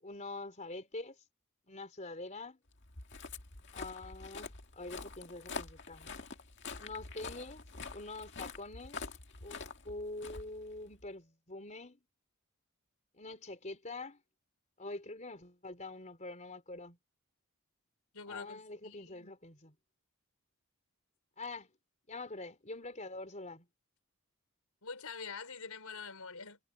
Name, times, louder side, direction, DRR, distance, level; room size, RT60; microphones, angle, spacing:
voice 1, 0.0-1.2 1.7-2.6 3.7-6.1 6.8-7.6 7.9-9.1 9.4-12.0 13.1-14.2 14.8-17.0 18.3-19.7 21.4-21.7 22.1-23.7, left 2 dB, 35° left, 3.9 m, -45 dB
Walk footsteps, 2.8-11.1, left 4 dB, 55° left, 2.1 m, -46 dB
voice 2, 18.1-19.3 24.8-26.6, left 5 dB, 85° left, 4.6 m, -45 dB
head